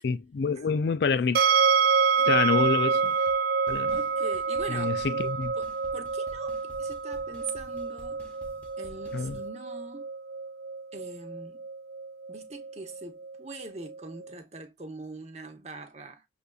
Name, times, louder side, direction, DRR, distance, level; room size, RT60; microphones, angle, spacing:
voice 1, 0.0-1.4 2.2-3.1 3.7-4.0 4.7-5.5 9.1-9.4, left 5 dB, 60° left, 0.4 m, -27 dB
sound 1, 1.3-14.3, right 5 dB, 55° right, 0.3 m, -28 dB
sound 2, 2.6-2.8 3.0-3.4 3.7-9.5, left 1 dB, 10° left, 0.8 m, -51 dB
voice 2, 3.9-5.0 5.5-8.2 8.8-10.1 10.9-11.6 12.3-16.2, right 3 dB, 35° right, 0.8 m, -42 dB
6.7 x 2.5 x 2.3 m
head